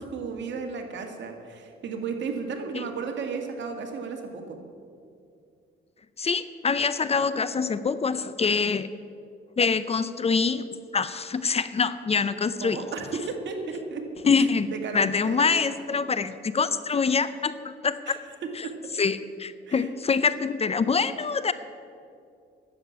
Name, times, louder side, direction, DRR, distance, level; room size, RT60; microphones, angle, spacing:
voice 1, 0.0-4.6 12.6-14.0 14.4-15.6 18.1-18.2 18.6-18.7 19.7-19.9, right 5 dB, 65° right, 4 dB, 1.9 m, -34 dB
voice 2, 6.2-8.9 9.6-10.6 10.9-12.9 14.2-18.2 18.6-18.7 19.0-21.5, left 5 dB, 30° left, 14 dB, 0.6 m, -25 dB
11.0 x 7.4 x 9.4 m, 2.4 s
cardioid pair, 90°, 20 cm